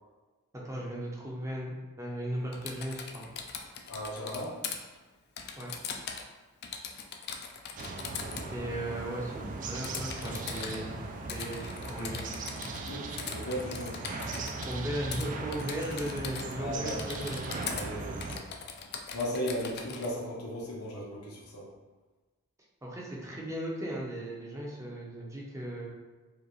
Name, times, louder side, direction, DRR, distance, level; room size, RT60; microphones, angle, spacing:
voice 1, 0.6-3.2 5.6-5.7 8.5-11.0 11.3-12.3 14.6-17.5 22.8-25.9, right 1 dB, 15° right, -3 dB, 0.7 m, -37 dB
Typing, 2.5-4.8 5.4-6.3 6.6-8.5 9.8-10.8 11.3-12.9 13.2-14.7 15.1-15.3 15.5-16.6 16.9-17.9 18.2-20.1, left 6 dB, 50° left, 0.4 m, -40 dB
voice 2, 3.9-4.6 8.4-8.7 12.7-14.1 16.6-17.3 17.7-18.5 19.1-21.7, equal, 85° left, -4 dB, 0.9 m, -37 dB
sound 1, 7.8-18.4, right 3 dB, 35° right, 0.3 m, -39 dB
4.9 x 2.4 x 3.1 m, 1.3 s
head